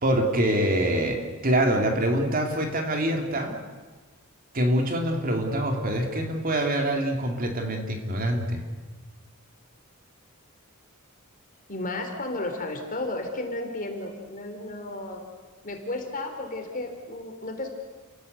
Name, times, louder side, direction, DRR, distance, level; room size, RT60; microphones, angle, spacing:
voice 1, 0.0-3.6 4.5-8.6, right 1 dB, 40° right, 4 dB, 2.9 m, -25 dB
voice 2, 11.7-15.2 15.6-17.7, left 2 dB, 40° left, 4 dB, 3.7 m, -33 dB
29.5 x 18.0 x 8.1 m, 1.4 s
head